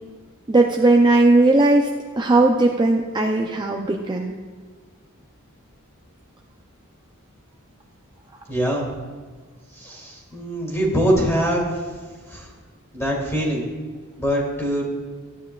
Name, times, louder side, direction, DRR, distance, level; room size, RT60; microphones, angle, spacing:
voice 1, 0.5-1.9 2.2-4.3, right 2 dB, 20° right, 1 dB, 0.5 m, -17 dB
voice 2, 8.5-8.9 9.8-11.7 12.3-12.4 12.9-13.7 14.2-14.8, equal, 10° left, -1 dB, 2.5 m, -23 dB
14.5 x 9.0 x 2.4 m, 1.5 s
head